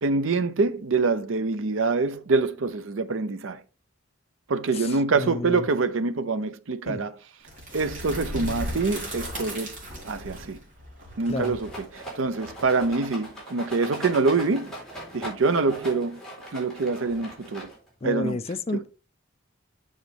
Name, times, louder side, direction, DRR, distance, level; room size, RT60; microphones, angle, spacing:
voice 1, 0.0-3.6 4.5-7.1 7.7-9.7 10.0-10.6 11.2-14.7 15.1-16.2 16.5-17.7 18.0-18.4 18.7-18.8, right 3 dB, 70° right, 0.6 m, -25 dB
voice 2, 4.7-5.7 6.9-7.0 11.3-11.6 18.0-18.9, left 2 dB, 30° left, 0.5 m, -31 dB
sound 1, 7.4-13.3, equal, 40° right, 3.7 m, -36 dB
Rattle, 11.3-18.0, right 1 dB, 5° left, 4.0 m, -40 dB
8.2 x 6.3 x 3.5 m
head